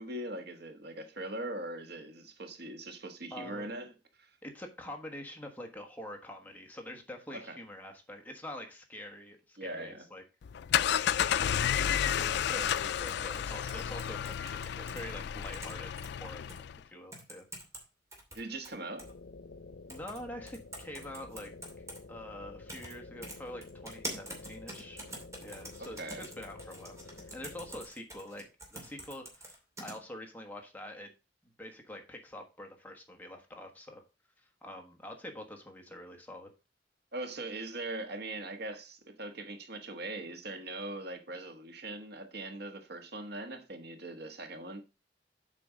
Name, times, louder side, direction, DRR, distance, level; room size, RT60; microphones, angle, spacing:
voice 1, 0.0-3.9 4.2-4.3 7.3-7.6 9.6-10.0 18.3-19.1 25.8-26.3 37.1-44.8, right 2 dB, 65° right, 1.3 m, -41 dB
voice 2, 3.3-3.7 4.4-10.2 11.1-16.5 16.9-17.5 19.9-21.5 22.1-25.0 25.4-28.4 28.7-31.1 31.6-34.0 34.6-36.5, left 1 dB, 10° left, 1.4 m, -45 dB
sound 1, 10.4-16.8, left 9 dB, 65° left, 0.3 m, -31 dB
sound 2, 12.5-15.0 15.4-16.1 16.5-16.6 17.1-17.8 18.1-19.1 19.9-20.2 20.5-22.0 22.7-22.9 23.2-29.9, right 1 dB, 15° right, 2.7 m, -45 dB
sound 3, 19.0-27.8, left 3 dB, 85° left, 0.8 m, -50 dB
7.7 x 5.2 x 5.0 m
head